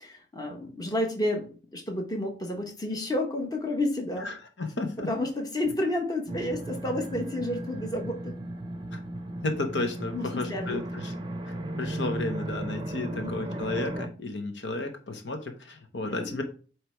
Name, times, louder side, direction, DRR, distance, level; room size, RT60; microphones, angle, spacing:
voice 1, 0.0-4.3 5.1-8.4 10.1-10.8 13.0-13.7 16.0-16.4, left 1 dB, 20° left, 2 dB, 1.2 m, -31 dB
voice 2, 4.2-5.1 8.9-9.0 9.4-11.1 11.8-16.4, left 2 dB, 75° left, 5 dB, 1.1 m, -33 dB
sound 1, 6.3-14.1, right 1 dB, 25° right, 0.6 m, -36 dB
8.1 x 3.3 x 4.6 m, 0.38 s
head